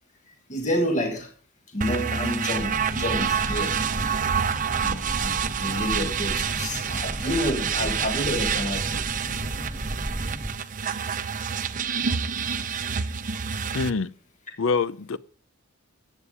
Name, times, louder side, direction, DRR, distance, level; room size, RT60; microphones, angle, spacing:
voice 1, 0.3-1.3 1.7-4.2 4.8-9.1, equal, 35° left, 1.6 m, -29 dB
sound 1, 1.8-13.9, right 7 dB, 40° right, 0.7 m, -28 dB
Boat Water vehicle, 2.5-10.5, equal, ahead, 1.2 m, -34 dB
voice 2, 13.7-14.1 14.6-15.2, left 4 dB, 70° left, 0.6 m, -25 dB
14.5 x 8.5 x 5.0 m
head